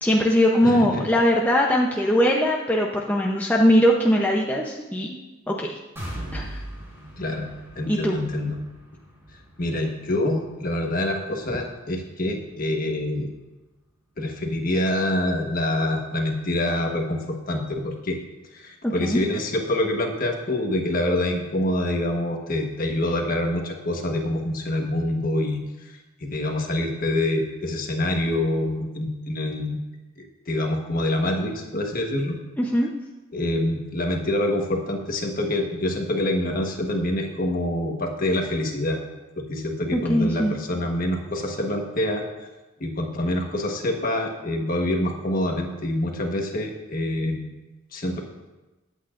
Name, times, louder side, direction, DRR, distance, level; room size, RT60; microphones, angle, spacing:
voice 1, 0.0-5.2 5.5-5.7 6.3-6.6 7.9-8.2 18.8-19.2 32.6-32.9 39.9-40.6, equal, 10° left, -2 dB, 0.7 m, -21 dB
voice 2, 0.6-1.1 7.2-7.5 7.7-8.6 9.6-13.3 14.2-18.2 18.5-25.6 26.2-29.8 30.5-32.4 33.3-39.0 39.4-42.2 42.8-47.4 47.9-48.2, left 1 dB, 40° left, 2 dB, 1.3 m, -26 dB
sound 1, 6.0-13.7 14.1-14.3 14.7-14.8, right 1 dB, 10° right, 3.9 m, -41 dB
21.0 x 8.4 x 2.6 m, 1.1 s
head